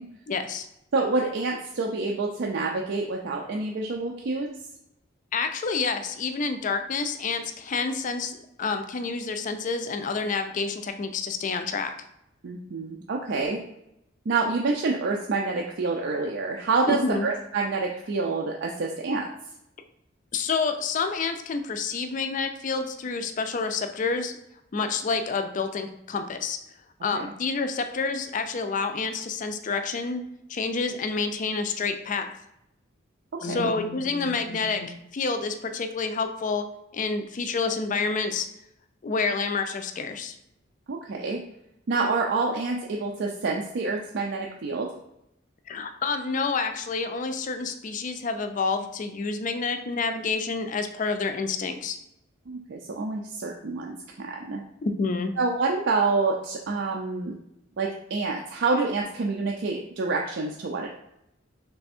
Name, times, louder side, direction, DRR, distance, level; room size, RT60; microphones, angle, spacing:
voice 1, 0.3-0.7 5.3-11.9 16.9-17.3 20.3-24.3 24.7-26.6 27.0-30.2 30.5-32.3 33.4-36.6 36.9-38.5 39.0-40.4 45.7-52.0 54.8-55.3, left 4 dB, 40° left, 8 dB, 0.4 m, -28 dB
voice 2, 0.9-4.5 12.4-13.6 14.3-19.3 27.1-27.3 33.5-33.7 40.9-41.4 41.9-44.9 52.5-54.6 55.4-57.3 57.8-60.9, right 3 dB, 60° right, 0 dB, 0.4 m, -27 dB
3.3 x 3.3 x 4.2 m, 0.82 s
head